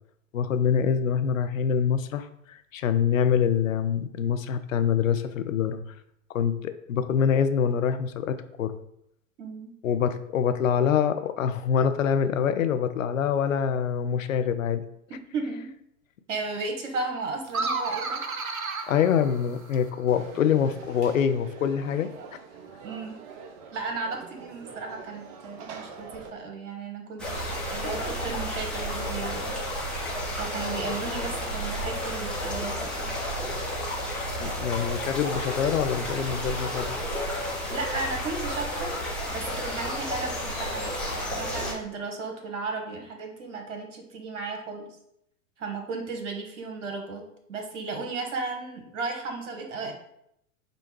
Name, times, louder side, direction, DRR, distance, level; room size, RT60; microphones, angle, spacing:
voice 1, 0.3-5.8 6.3-8.8 9.8-14.8 18.9-22.1 34.4-36.9, left 7 dB, 70° left, 10 dB, 0.6 m, -25 dB
voice 2, 9.4-9.7 15.1-15.7 16.3-18.7 22.8-23.2 23.7-29.6 30.4-33.1 37.7-38.9 39.3-44.9 45.6-47.2 47.5-49.9, right 3 dB, 60° right, 3 dB, 1.2 m, -35 dB
sound 1, 17.5-20.0, right 3 dB, 90° right, 0.6 m, -32 dB
Conversation / Crowd, 20.1-26.3, right 5 dB, 25° right, 0.4 m, -44 dB
sound 2, 27.2-41.7, equal, ahead, 1.1 m, -31 dB
5.1 x 2.3 x 4.5 m, 0.75 s
figure-of-eight pair, 95°, 41 cm